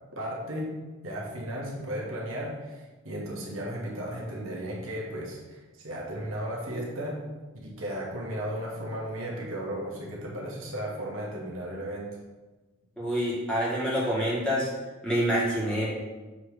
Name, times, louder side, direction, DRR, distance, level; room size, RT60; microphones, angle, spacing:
voice 1, 0.2-0.7 1.0-7.2 7.6-12.1, equal, 65° right, -3 dB, 1.3 m, -35 dB
voice 2, 13.0-14.7 15.0-16.0, equal, 5° left, -8 dB, 1.6 m, -27 dB
6.7 x 3.1 x 4.9 m, 1.2 s
head